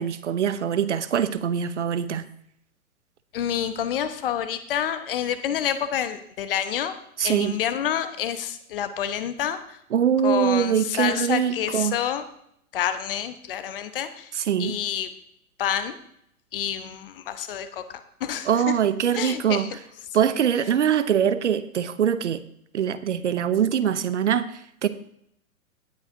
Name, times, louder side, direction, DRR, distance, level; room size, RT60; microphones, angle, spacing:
voice 1, 0.0-2.3 7.2-7.6 9.9-11.9 14.4-14.8 18.5-19.7 20.1-22.4 22.7-24.9, right 8 dB, 55° right, 14 dB, 0.7 m, -23 dB
voice 2, 3.3-6.9 7.2-9.8 10.2-12.2 12.7-14.3 14.6-15.1 15.6-16.0 16.5-18.8 19.1-19.7, left 9 dB, 40° left, 11 dB, 0.9 m, -28 dB
18.0 x 8.1 x 2.7 m, 0.71 s
figure-of-eight pair, 110°, 44 cm